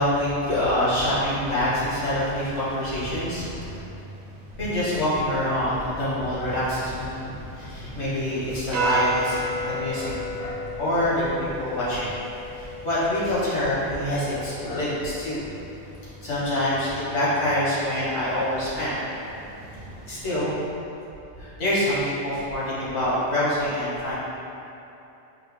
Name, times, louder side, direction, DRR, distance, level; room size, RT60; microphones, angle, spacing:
voice 1, 0.0-3.8 4.6-12.1 12.5-15.5 16.2-19.1 19.7-20.5 21.4-24.2, left 1 dB, 90° left, -9 dB, 1.7 m, -26 dB
sound 1, 3.6-20.7, right 1 dB, 50° right, 0.5 m, -36 dB
4.8 x 2.8 x 3.3 m, 2.9 s
omnidirectional pair, 1.2 m